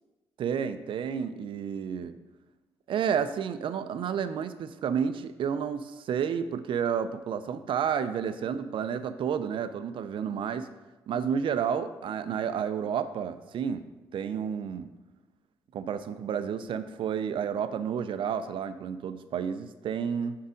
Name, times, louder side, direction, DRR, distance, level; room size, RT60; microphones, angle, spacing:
voice 1, 0.4-2.2 2.9-10.7 11.1-13.8 14.1-14.9 15.7-20.4, right 7 dB, 60° right, 11 dB, 0.5 m, -31 dB
5.7 x 4.8 x 5.0 m, 1.1 s
supercardioid pair, 60°, 10 cm